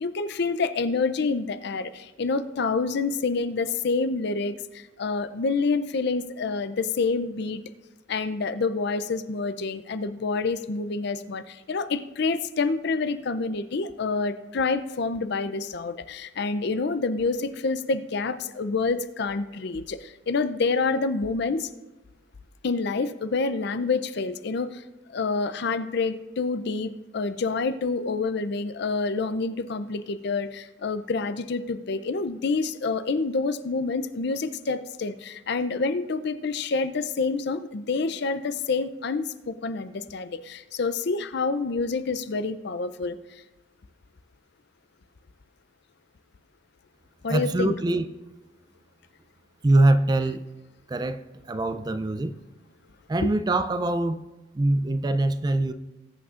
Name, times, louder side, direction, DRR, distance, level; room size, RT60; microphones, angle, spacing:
voice 1, 0.0-7.6 8.1-21.7 22.6-24.8 25.1-43.2 47.2-47.7 53.2-53.3, left 4 dB, 60° left, 0.5 m, -27 dB
voice 2, 47.3-48.1 49.6-50.4 50.9-52.4 53.1-54.2 54.5-55.7, right 2 dB, 20° right, 0.4 m, -23 dB
20.0 x 8.6 x 2.5 m
head